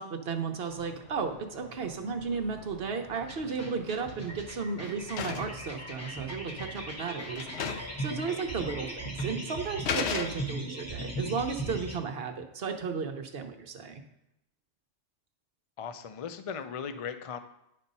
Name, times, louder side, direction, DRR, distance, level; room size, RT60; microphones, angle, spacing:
voice 1, 0.0-14.0, right 5 dB, 60° right, 5 dB, 1.0 m, -34 dB
sound 1, 0.7-8.9, equal, 35° left, 1.0 m, -52 dB
sound 2, 3.2-12.0, right 1 dB, 15° left, 1.2 m, -38 dB
sound 3, 3.4-3.9 4.3-5.6 6.6-6.7 7.0-7.1 7.4-8.0 8.3-8.4 9.2-9.3 9.9-10.8, left 7 dB, 70° left, 0.9 m, -35 dB
voice 2, 15.8-17.4, left 7 dB, 50° left, 9 dB, 0.4 m, -37 dB
10.0 x 4.3 x 5.4 m, 0.84 s
omnidirectional pair, 1.2 m